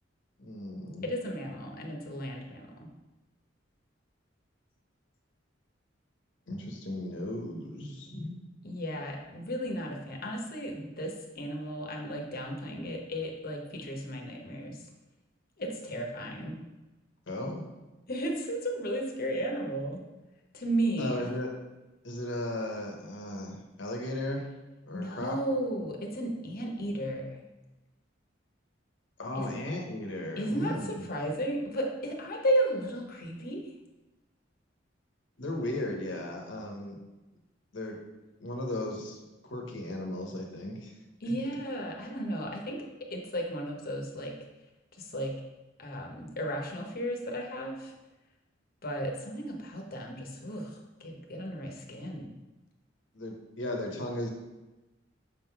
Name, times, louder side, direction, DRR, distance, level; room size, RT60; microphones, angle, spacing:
voice 1, 0.4-1.1 6.5-8.4 17.3-17.6 21.0-21.5 22.0-24.5 24.9-25.4 29.2-31.0 35.4-37.0 37.7-38.0 38.4-39.2 39.4-40.9 53.1-54.3, left 1 dB, 70° left, 1 dB, 1.2 m, -36 dB
voice 2, 1.0-2.7 8.6-14.8 15.6-16.6 18.1-20.1 20.5-21.4 24.9-27.4 29.3-29.5 30.4-33.7 41.2-42.8 43.1-44.4 44.9-45.3 45.8-47.9 48.8-52.3, right 1 dB, 50° left, 1 dB, 1.1 m, -34 dB
6.6 x 3.9 x 4.6 m, 1.1 s
head